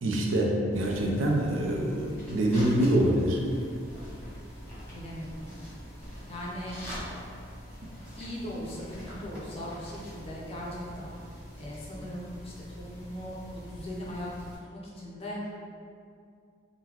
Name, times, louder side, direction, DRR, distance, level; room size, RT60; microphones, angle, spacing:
voice 1, 0.0-3.4, right 1 dB, 90° right, -1 dB, 0.5 m, -25 dB
sound 1, 0.7-14.6, equal, 10° left, 1.0 m, -44 dB
voice 2, 4.9-5.5 6.3-6.8 8.1-11.2 11.6-14.3 14.7-15.5, equal, 30° left, -4 dB, 0.5 m, -39 dB
3.7 x 2.1 x 2.9 m, 2.4 s
head